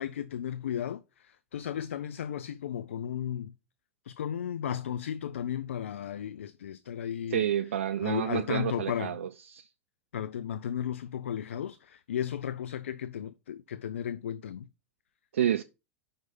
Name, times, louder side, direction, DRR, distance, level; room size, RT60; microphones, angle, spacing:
voice 1, 0.0-3.5 4.0-7.5 8.0-9.2 10.1-14.7, left 9 dB, 75° left, 0.4 m, -34 dB
voice 2, 7.3-9.7 15.3-15.6, right 10 dB, 70° right, 0.4 m, -29 dB
5.6 x 4.7 x 5.3 m
figure-of-eight pair, 90°, 7 cm